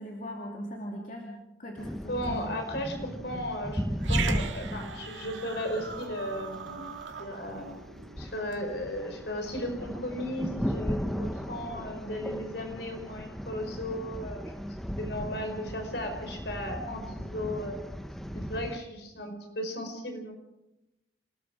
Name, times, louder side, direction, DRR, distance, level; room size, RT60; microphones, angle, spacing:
voice 1, 0.0-2.5, equal, 45° left, -1 dB, 2.8 m, -40 dB
sound 1, 1.8-18.8, equal, ahead, 0.9 m, -36 dB
voice 2, 2.1-3.8 4.1-6.9 7.2-7.7 8.2-14.5 15.0-17.8 18.3-20.3, left 1 dB, 65° left, 4 dB, 5.1 m, -35 dB
Growling, 4.0-8.6, right 6 dB, 80° right, 1.9 m, -39 dB
28.5 x 19.5 x 5.0 m, 0.93 s
head